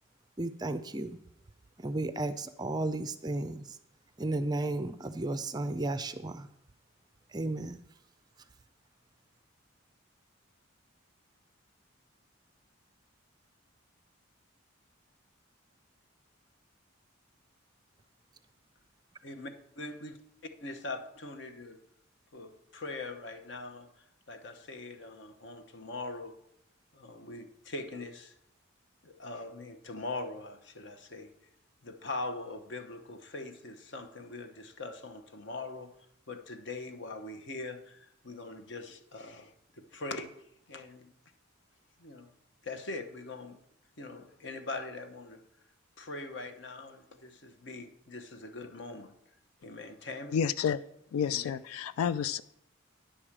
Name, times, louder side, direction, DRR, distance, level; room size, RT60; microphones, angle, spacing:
voice 1, 0.4-1.2 1.8-3.8 4.2-6.5 7.3-7.8, right 2 dB, 20° right, 0.4 m, -33 dB
voice 2, 19.2-20.2 20.6-21.8 22.3-26.4 26.9-28.3 29.0-31.3 31.8-36.0 36.3-41.1 42.0-42.3 42.6-43.6 44.0-45.4 46.0-49.2 49.6-50.4 51.3-51.5, left 2 dB, 55° left, 0.9 m, -42 dB
voice 3, 50.3-50.8 51.1-52.4, left 7 dB, 90° left, 0.3 m, -30 dB
10.0 x 4.9 x 7.3 m
head